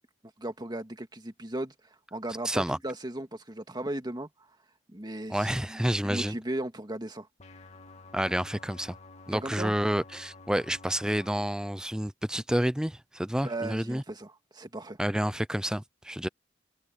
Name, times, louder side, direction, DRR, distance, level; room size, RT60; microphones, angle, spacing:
voice 1, 0.4-1.7 2.1-4.3 4.9-7.3 9.3-9.7 13.4-15.0, right 1 dB, 25° right, 2.0 m, -36 dB
voice 2, 2.4-2.8 5.3-6.3 8.1-9.0 9.3-14.0 15.0-16.3, equal, 5° right, 0.5 m, -29 dB
sound 1, 7.4-11.4, left 3 dB, 40° left, 2.4 m, -50 dB
head